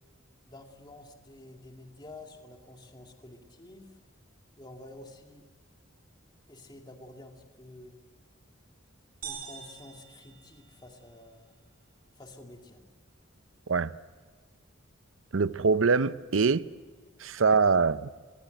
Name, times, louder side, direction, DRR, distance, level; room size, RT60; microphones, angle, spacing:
voice 1, 0.4-4.0 4.6-5.5 6.5-8.0 9.2-11.6 12.1-12.8, left 2 dB, 20° left, 2.3 m, -49 dB
sound 1, 9.2-11.2, right 7 dB, 50° right, 6.8 m, -44 dB
voice 2, 13.7-14.0 15.3-16.7 17.2-18.1, right 5 dB, 80° right, 0.6 m, -24 dB
25.0 x 21.5 x 8.0 m
head